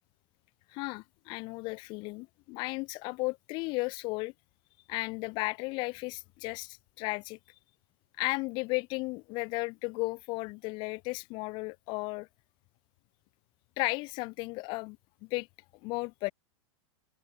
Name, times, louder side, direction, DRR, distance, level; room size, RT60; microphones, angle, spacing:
voice 1, 0.7-4.3 4.9-7.4 8.2-12.3 13.8-15.0 15.2-15.5 15.8-16.3, left 26 dB, 30° left, 1.7 m, -34 dB
open air
supercardioid pair, 170°, 15 cm